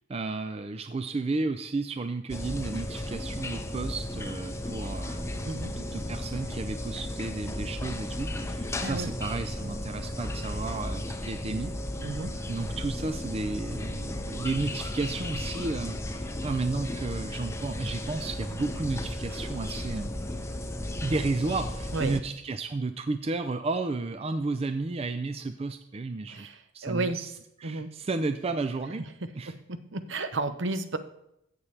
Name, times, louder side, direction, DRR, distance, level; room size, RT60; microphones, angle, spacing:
voice 1, 0.1-11.7 12.5-20.1 21.0-26.5 26.7-27.3 27.6-29.1 29.4-29.5, right 3 dB, 30° right, 9 dB, 0.4 m, -32 dB
sound 1, 2.3-22.2, left 1 dB, 15° left, 0.6 m, -35 dB
voice 2, 12.0-12.4 21.9-22.2 26.3-26.6 26.8-27.2 27.6-27.9 29.5-31.0, right 2 dB, 65° right, 10 dB, 0.8 m, -32 dB
16.0 x 6.9 x 3.3 m, 0.77 s
head